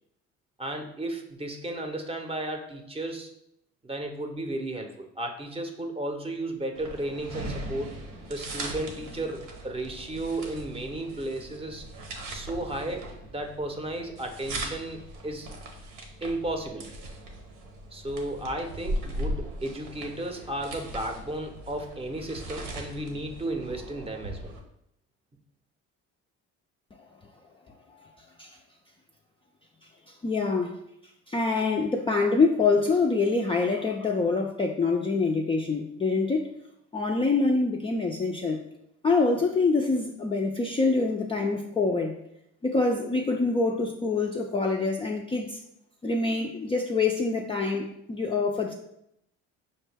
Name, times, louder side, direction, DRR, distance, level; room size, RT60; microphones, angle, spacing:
voice 1, 0.6-3.3 3.8-7.9 8.3-11.8 12.3-15.5 16.2-16.9 17.9-24.5, right 1 dB, 20° right, 4 dB, 0.6 m, -34 dB
sound 1, 6.7-24.6, right 1 dB, 85° right, 0.9 m, -39 dB
voice 2, 30.1-30.8 31.3-36.5 36.9-38.6 39.0-42.1 42.6-45.6 46.0-48.7, left 3 dB, 20° left, 1 dB, 0.3 m, -25 dB
5.5 x 2.2 x 3.3 m, 0.77 s
cardioid pair, 90°, 31 cm